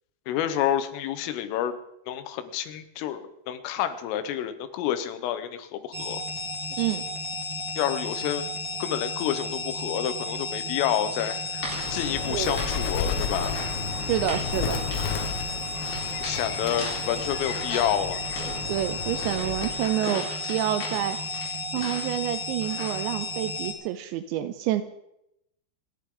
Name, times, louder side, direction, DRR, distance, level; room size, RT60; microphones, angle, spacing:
voice 1, 0.3-1.8 2.1-6.2 7.8-8.5 8.8-11.6 11.9-13.6 16.2-18.2, left 10 dB, 90° left, 10 dB, 3.7 m, -29 dB
sound 1, 5.9-23.7, left 2 dB, 55° right, 1.2 m, -33 dB
sound 2, 11.2-12.8 13.1-13.8 14.1-14.5 14.9-15.3 15.8-17.9 18.3-22.2 22.6-23.0, left 2 dB, 40° left, 5.4 m, -38 dB
Bird, 11.6-19.9, left 6 dB, 70° left, 3.4 m, -33 dB
voice 2, 14.0-14.8 18.7-21.2 21.7-24.8, right 12 dB, 80° right, 11 dB, 2.6 m, -28 dB
28.5 x 11.0 x 3.8 m, 0.82 s
omnidirectional pair, 5.7 m